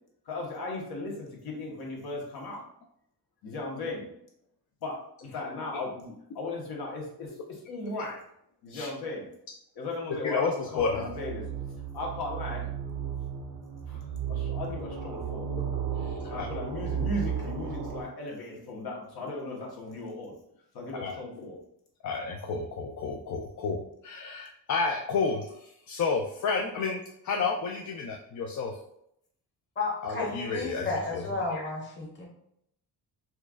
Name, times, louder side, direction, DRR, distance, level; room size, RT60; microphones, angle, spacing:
voice 1, 0.3-2.6 3.4-4.0 4.8-8.2 8.6-9.3 9.8-11.4 11.9-12.7 13.9-15.5 16.2-20.3 20.7-21.5, left 2 dB, 70° left, -1 dB, 1.1 m, -37 dB
voice 2, 10.2-11.1 16.4-16.5 21.0-21.5 22.0-25.4 25.9-28.7 30.0-30.9 31.1-31.2 31.5-31.6, left 4 dB, 50° left, 1 dB, 0.4 m, -31 dB
sound 1, 10.8-18.0, right 8 dB, 70° right, 0.7 m, -34 dB
voice 3, 29.8-32.3, left 3 dB, 30° left, -2 dB, 1.0 m, -32 dB
4.3 x 2.4 x 2.3 m, 0.74 s
cardioid pair, 110°, 39 cm